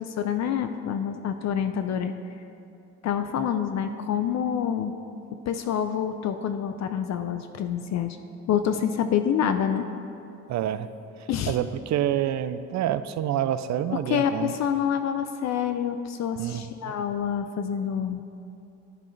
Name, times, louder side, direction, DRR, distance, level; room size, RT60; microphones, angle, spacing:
voice 1, 0.0-2.1 3.0-4.9 5.5-8.2 8.5-9.9 11.3-11.6 14.1-18.3, left 8 dB, 60° left, 8 dB, 0.5 m, -27 dB
voice 2, 10.5-10.9 11.5-14.5 16.4-16.9, right 11 dB, 65° right, 13 dB, 0.5 m, -27 dB
14.0 x 7.7 x 3.2 m, 2.7 s
cardioid pair, 90°, 30 cm